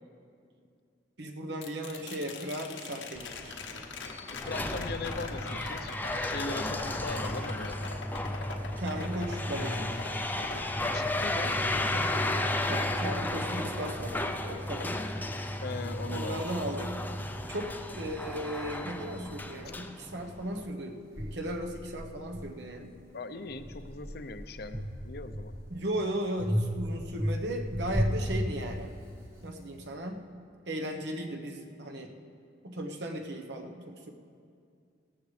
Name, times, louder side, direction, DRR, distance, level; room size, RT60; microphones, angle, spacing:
voice 1, 1.2-3.6 8.8-10.0 12.3-15.0 16.1-17.0 17.5-23.0 25.7-28.9 29.4-30.2 30.7-32.1 32.6-34.1, right 1 dB, 65° right, 3 dB, 1.0 m, -36 dB
sound 1, 1.6-15.7 16.1-17.2 19.4-19.5, left 3 dB, 90° left, 1.1 m, -43 dB
sound 2, 3.1-20.7, left 1 dB, 10° left, 0.5 m, -34 dB
voice 2, 4.4-7.8 10.9-11.6 11.9-12.5 15.6-16.4 23.1-25.5, left 3 dB, 55° left, 9 dB, 0.6 m, -40 dB
sound 3, 20.4-20.5 21.2-23.0 23.5-25.8 26.4-29.2, equal, 15° right, 1.2 m, -34 dB
18.0 x 13.5 x 3.3 m, 2.3 s
head